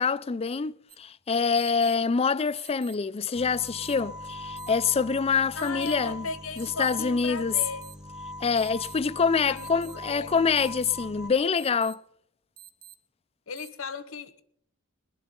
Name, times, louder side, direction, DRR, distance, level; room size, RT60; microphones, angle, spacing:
voice 1, 0.0-6.3 6.6-7.6 8.4-12.0, left 5 dB, 30° left, 0.4 m, -26 dB
sound 1, 0.9-1.0 1.6-2.0 2.6-3.0 3.6-4.0 4.6-5.0 5.6-6.0 6.6-7.0 7.6-7.9 8.6-8.9 9.6-9.9 10.6-10.9 11.6-11.9 12.6-12.9 13.6-13.7, right 10 dB, 40° right, 1.0 m, -48 dB
sound 2, 3.3-11.3, left 1 dB, 5° right, 0.9 m, -41 dB
voice 2, 5.5-7.8 9.4-10.5 13.5-14.4, left 4 dB, 75° left, 1.1 m, -37 dB
20.5 x 11.5 x 3.8 m
head